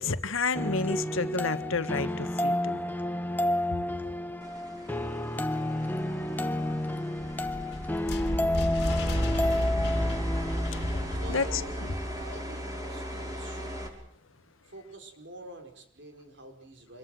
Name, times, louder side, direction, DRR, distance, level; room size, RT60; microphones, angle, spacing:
voice 1, 0.0-2.7 10.8-11.0 11.3-11.6, left 4 dB, 85° left, 11 dB, 1.6 m, -30 dB
sound 1, 0.5-11.6, left 1 dB, 10° left, 1.0 m, -31 dB
sound 2, 4.4-13.9, equal, 20° right, 5.6 m, -39 dB
sound 3, 7.2-12.3, equal, 55° left, 2.7 m, -31 dB
voice 2, 11.2-11.9 12.1-13.8 14.6-17.0, right 1 dB, 60° right, 5 dB, 4.7 m, -46 dB
27.0 x 22.0 x 7.9 m, 0.77 s
head